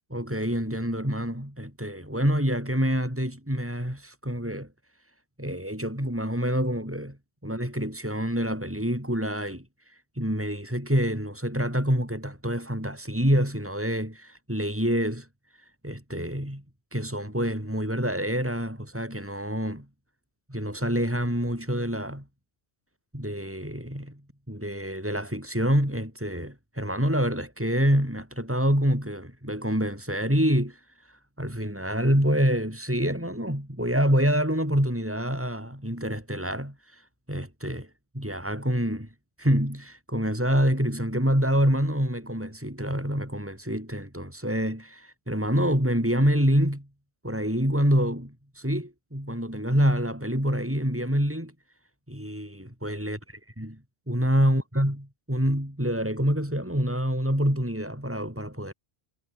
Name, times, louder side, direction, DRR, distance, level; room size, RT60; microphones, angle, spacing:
voice 1, 0.1-4.7 5.4-7.2 7.4-9.6 10.2-15.3 15.8-16.6 16.9-19.9 20.5-22.2 23.1-24.2 24.5-30.8 31.4-37.0 37.3-37.9 38.1-39.1 39.4-46.9 47.2-51.5 52.1-53.2 53.6-53.7 54.1-55.0 55.3-58.7, equal, 10° right, 7.4 m, -26 dB
omnidirectional pair, 1.0 m